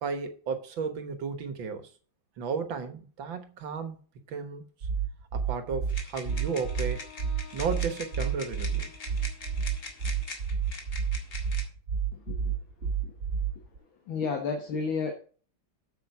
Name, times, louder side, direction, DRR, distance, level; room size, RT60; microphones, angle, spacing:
voice 1, 0.0-1.9 2.4-4.0 4.3-4.6 5.3-7.1 7.5-8.9, right 5 dB, 75° right, 2.0 m, -33 dB
sound 1, 4.8-13.8, right 7 dB, 55° right, 2.6 m, -30 dB
sound 2, 5.9-11.7, left 3 dB, 40° left, 2.3 m, -43 dB
Wind instrument woodwind instrument, 6.3-10.3, left 9 dB, 60° left, 3.4 m, -53 dB
voice 2, 12.8-13.1 14.1-15.1, left 5 dB, 80° left, 2.0 m, -32 dB
8.6 x 7.5 x 4.7 m
omnidirectional pair, 2.1 m